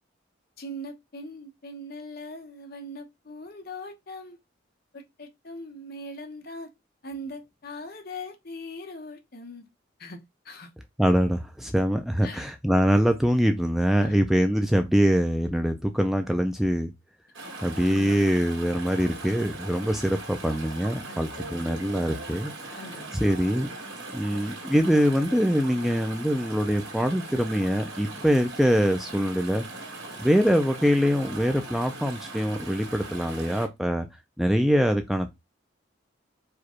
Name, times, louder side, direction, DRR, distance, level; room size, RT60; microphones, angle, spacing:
voice 1, 0.6-4.4 4.9-6.7 7.0-9.6 10.0-10.2 10.4-10.7 12.2-12.5 14.0-14.2 17.7-18.2 21.0-21.8 22.7-23.3, left 1 dB, 50° left, 1.0 m, -40 dB
voice 2, 11.0-16.9 17.6-22.5 23.1-23.7 24.1-29.6 30.2-34.1 34.4-35.3, equal, ahead, 0.4 m, -24 dB
Chatter / Stream, 17.3-33.7, right 2 dB, 75° right, 1.9 m, -40 dB
4.8 x 2.3 x 4.3 m
head